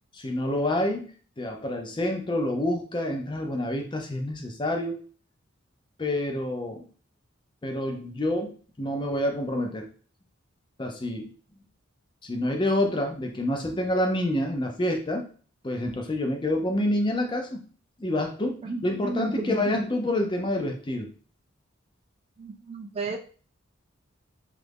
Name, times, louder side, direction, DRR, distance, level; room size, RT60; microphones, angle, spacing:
voice 1, 0.1-1.1 1.4-5.0 6.0-6.8 7.6-9.9 10.8-11.3 12.2-15.3 15.6-17.6 18.0-21.1, left 1 dB, 25° left, 3 dB, 0.5 m, -28 dB
voice 2, 18.6-19.9 22.4-23.2, right 3 dB, 30° right, 4 dB, 0.3 m, -33 dB
3.1 x 2.5 x 3.4 m, 0.40 s
head